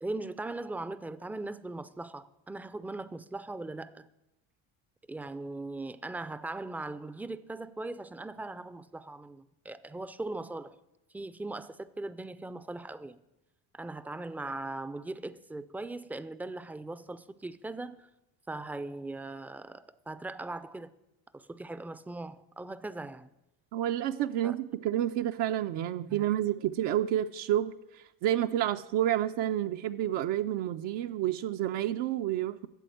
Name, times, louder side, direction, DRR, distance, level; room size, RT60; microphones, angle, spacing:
voice 1, 0.0-4.1 5.1-10.8 11.1-13.2 13.7-18.1 18.5-20.9 21.3-23.3 24.4-24.6 26.1-26.3, right 2 dB, 5° right, 0.3 m, -39 dB
voice 2, 23.7-32.7, right 12 dB, 75° right, 0.6 m, -30 dB
13.5 x 7.7 x 7.8 m
cardioid pair, 100°, 43 cm